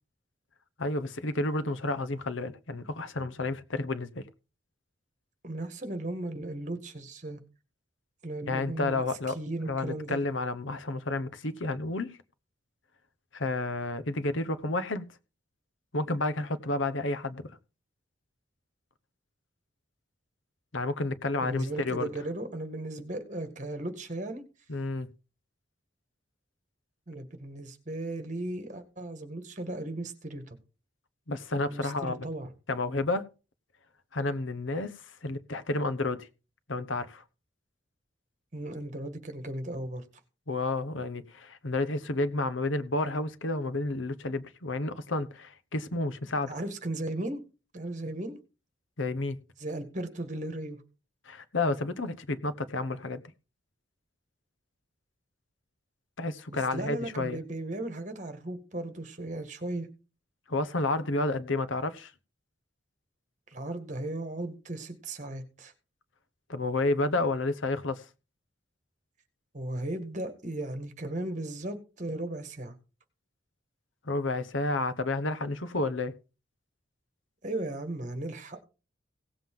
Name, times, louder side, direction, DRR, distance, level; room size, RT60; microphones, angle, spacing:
voice 1, 0.8-4.2 8.5-9.3 9.7-12.2 13.3-15.1 15.9-17.5 20.7-22.1 24.7-25.1 31.3-32.2 32.7-33.2 34.1-34.9 35.2-36.3 36.7-37.2 40.5-46.5 49.0-49.4 51.3-53.2 56.2-57.4 60.5-62.1 66.5-68.0 74.1-76.1, left 2 dB, 85° left, 1.1 m, -30 dB
voice 2, 5.4-7.4 8.2-9.0 9.3-10.2 21.4-24.4 27.1-30.6 31.7-32.5 38.5-40.0 46.5-47.4 47.7-48.4 49.6-50.8 56.5-59.9 63.5-65.7 69.5-72.8 77.4-78.6, right 1 dB, 40° right, 1.9 m, -36 dB
17.5 x 7.6 x 3.8 m
head